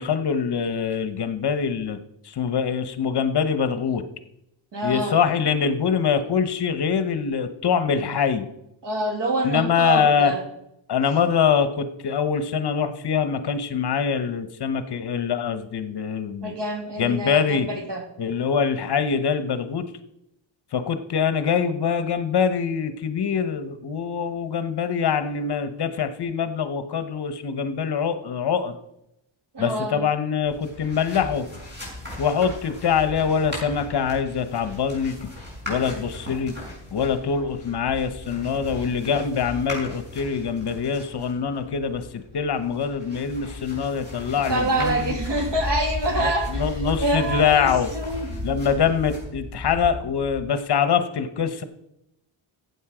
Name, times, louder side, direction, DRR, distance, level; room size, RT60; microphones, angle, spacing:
voice 1, 0.0-2.0 2.2-4.0 4.8-8.4 9.4-10.3 10.9-16.5 17.0-17.7 18.2-19.8 20.7-28.7 29.6-31.5 32.2-35.3 35.7-36.5 36.9-42.1 42.3-45.2 46.2-47.9 48.4-51.6, left 7 dB, 55° left, 10 dB, 1.0 m, -24 dB
voice 2, 4.7-5.2 8.8-10.4 16.4-18.0 29.5-30.0 44.4-46.6 47.0-48.4, right 1 dB, 55° right, 3 dB, 2.4 m, -26 dB
sound 1, 30.5-50.4, left 1 dB, 20° right, 5.8 m, -36 dB
15.0 x 8.2 x 5.0 m, 0.84 s
wide cardioid pair, 165°, 48 cm